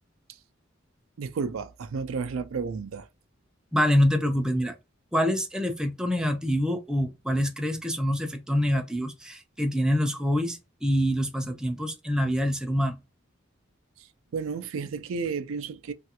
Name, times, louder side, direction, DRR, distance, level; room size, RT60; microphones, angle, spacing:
voice 1, 1.2-3.1 14.3-15.9, right 5 dB, 80° right, 0.4 m, -32 dB
voice 2, 3.7-4.8 5.1-13.0, equal, 5° right, 0.4 m, -26 dB
3.2 x 2.4 x 2.8 m
head